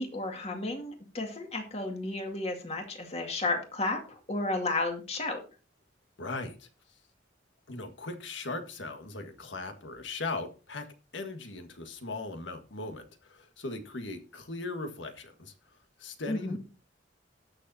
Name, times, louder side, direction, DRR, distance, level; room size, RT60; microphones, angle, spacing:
voice 1, 0.0-5.4 16.3-16.6, left 2 dB, 35° left, 2.2 m, -33 dB
voice 2, 6.2-7.0 7.7-10.9 11.1-16.6, left 3 dB, 90° left, 1.7 m, -39 dB
19.0 x 6.6 x 2.8 m
head